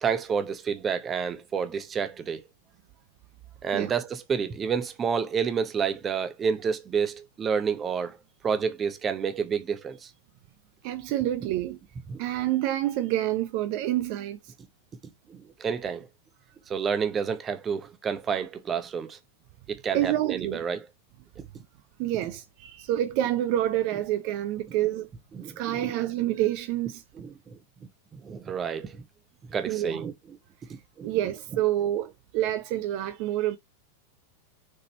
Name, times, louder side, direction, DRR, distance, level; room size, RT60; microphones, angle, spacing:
voice 1, 0.0-2.4 3.6-8.2 8.4-10.1 12.1-12.2 15.3-16.1 16.7-19.2 19.7-20.8 21.4-21.5 25.4-26.0 27.1-27.6 28.1-29.0 29.5-30.1 31.0-31.1, right 6 dB, 25° right, 1.1 m, -29 dB
voice 2, 10.8-11.8 12.2-14.4 19.9-20.6 22.0-25.1 25.6-27.0 29.7-30.0 31.0-33.6, right 13 dB, 45° right, 0.9 m, -27 dB
6.6 x 4.2 x 4.2 m
figure-of-eight pair, 90°, 0 cm